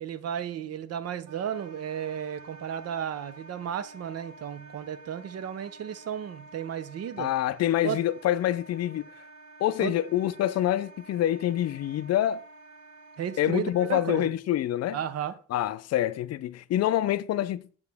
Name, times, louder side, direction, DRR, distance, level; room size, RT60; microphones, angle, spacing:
voice 1, 0.0-7.3 7.8-8.0 9.8-9.9 13.2-14.3 14.9-15.4, right 9 dB, 55° right, 0.6 m, -34 dB
Wind instrument woodwind instrument, 1.3-14.3, right 2 dB, 80° right, 0.9 m, -50 dB
voice 2, 7.2-9.1 9.6-12.4 13.4-15.0 15.5-17.6, left 12 dB, 60° left, 0.4 m, -26 dB
6.5 x 4.8 x 3.5 m
cardioid pair, 90°, 30 cm